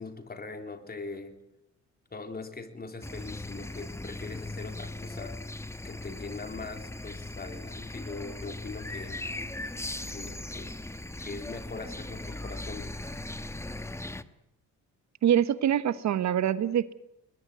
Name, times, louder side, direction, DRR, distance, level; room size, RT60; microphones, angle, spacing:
voice 1, 0.0-1.4 2.1-5.4 5.8-9.2 10.1-10.8 11.2-13.2, left 3 dB, 30° left, 7 dB, 3.6 m, -41 dB
sound 1, 3.0-14.2, left 2 dB, 10° left, 1.1 m, -39 dB
voice 2, 15.2-16.9, right 10 dB, 65° right, 15 dB, 1.2 m, -25 dB
21.5 x 21.0 x 9.2 m, 0.81 s
cardioid pair, 90°, 30 cm